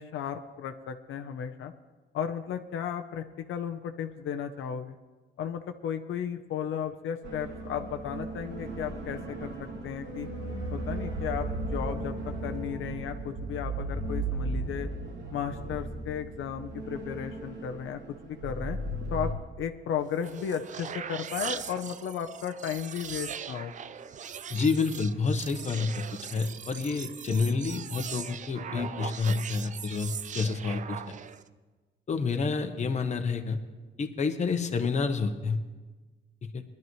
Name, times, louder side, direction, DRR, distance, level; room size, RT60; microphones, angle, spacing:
voice 1, 0.0-1.7 2.1-5.0 5.4-9.5 9.8-10.3 10.7-14.9 15.3-18.8 19.1-19.3 19.6-23.8, left 8 dB, 85° left, 5 dB, 0.8 m, -34 dB
sound 1, 7.2-19.3, right 2 dB, 65° right, 2.6 m, -36 dB
sound 2, 20.0-31.5, right 7 dB, 40° right, 0.5 m, -40 dB
voice 2, 24.5-26.0 26.3-31.2 32.1-33.6 34.0-35.6 36.5-36.6, left 4 dB, 35° left, 6 dB, 1.0 m, -29 dB
21.5 x 12.0 x 3.2 m, 1.3 s
cardioid pair, 140°, 20 cm